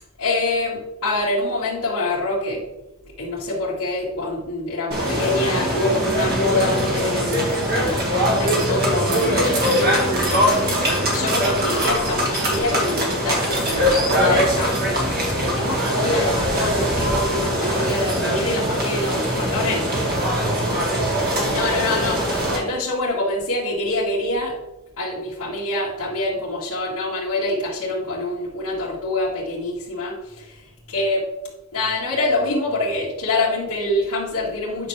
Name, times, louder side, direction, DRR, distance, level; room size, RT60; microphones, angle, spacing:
voice 1, 0.2-2.7 3.2-7.5 7.8-10.5 11.1-15.1 15.4-19.9 21.5-24.6 25.0-31.3 31.7-34.9, left 2 dB, 90° left, -9 dB, 1.9 m, -25 dB
sound 1, 4.9-22.6, equal, 45° right, 2.0 m, -22 dB
9.3 x 6.0 x 3.3 m, 0.95 s
head